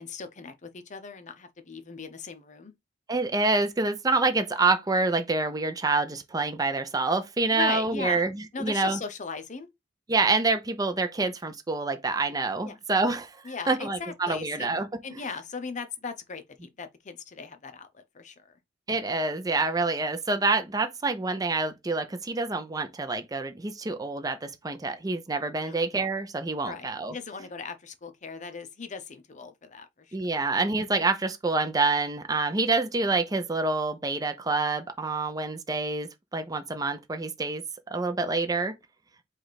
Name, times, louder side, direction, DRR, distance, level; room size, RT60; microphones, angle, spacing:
voice 1, 0.0-2.7 7.5-8.3 8.5-9.7 12.6-12.7 13.4-14.7 15.0-18.6 25.6-25.7 26.6-30.2, left 4 dB, 40° left, 0.7 m, -38 dB
voice 2, 3.1-9.0 10.1-15.2 18.9-27.1 30.1-37.6 37.9-38.8, right 3 dB, 20° right, 0.5 m, -27 dB
4.9 x 2.4 x 4.0 m
head